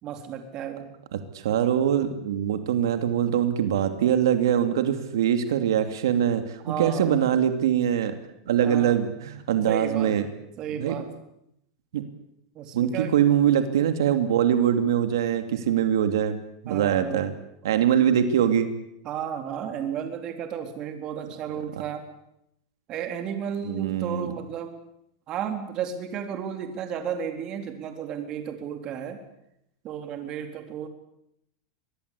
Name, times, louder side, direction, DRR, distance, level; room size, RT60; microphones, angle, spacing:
voice 1, 0.0-0.9 6.6-7.2 8.6-9.0 9.7-10.1 10.6-11.1 12.6-13.1 16.7-17.2 19.0-22.0 22.9-24.8 25.3-29.2 29.8-30.9, right 8 dB, 35° right, 6 dB, 3.9 m, -33 dB
voice 2, 1.1-8.1 8.5-10.3 10.8-10.9 11.9-12.0 12.7-16.4 16.6-17.3 17.6-18.7 21.7-21.8 23.6-24.3, right 9 dB, 90° right, 8 dB, 2.8 m, -23 dB
25.0 x 20.5 x 8.6 m, 0.77 s
supercardioid pair, 155°, 2 cm